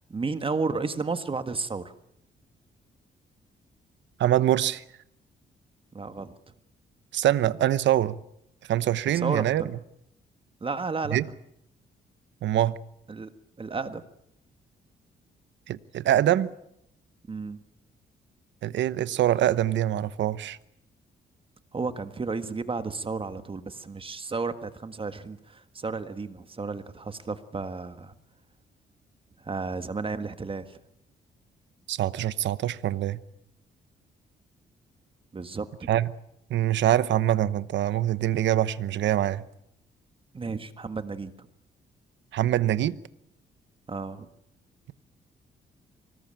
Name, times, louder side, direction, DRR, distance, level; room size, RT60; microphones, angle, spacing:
voice 1, 0.1-1.9 5.9-6.3 9.1-9.7 10.6-11.2 13.1-13.3 13.6-14.0 17.3-17.6 21.7-28.1 29.4-30.8 35.3-35.9 40.3-41.5 43.9-44.3, right 4 dB, 30° right, 1.6 m, -32 dB
voice 2, 4.2-4.8 7.1-8.2 8.7-9.6 11.1-11.3 12.4-12.8 15.7-16.5 18.6-20.6 31.9-33.2 35.9-36.1 36.5-39.4 42.3-43.0, right 12 dB, 80° right, 1.0 m, -24 dB
24.5 x 19.5 x 8.9 m
cardioid pair, 105°, 19 cm